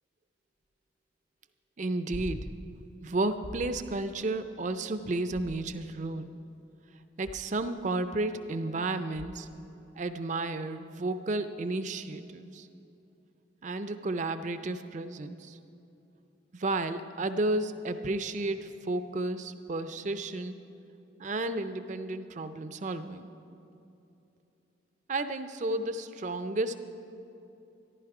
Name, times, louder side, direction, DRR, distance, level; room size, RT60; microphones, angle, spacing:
voice 1, 1.8-2.4 3.0-6.3 7.2-9.5 10.0-12.7 13.6-15.6 16.5-20.6 21.2-23.3 25.1-26.7, right 2 dB, 40° right, 10 dB, 0.5 m, -32 dB
sound 1, 2.1-2.8 3.4-3.9 5.3-6.0 7.2-7.7 9.1-9.6 12.0-12.1, equal, 65° left, 1.0 m, -43 dB
14.5 x 11.5 x 4.8 m, 2.8 s
head